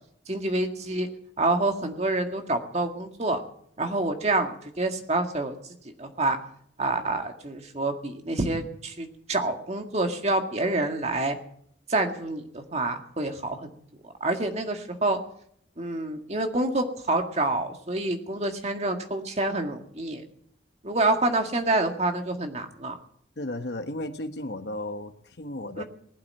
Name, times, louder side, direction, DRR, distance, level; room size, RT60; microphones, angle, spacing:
voice 1, 0.3-1.1 1.4-3.4 3.8-5.6 6.0-6.4 6.8-11.4 11.9-13.7 14.0-15.2 15.8-20.2 20.8-23.0 25.8-25.9, right 2 dB, 35° right, 4 dB, 1.9 m, -27 dB
voice 2, 23.4-25.8, left 1 dB, 65° left, 8 dB, 1.3 m, -34 dB
19.5 x 8.6 x 8.3 m, 0.67 s
head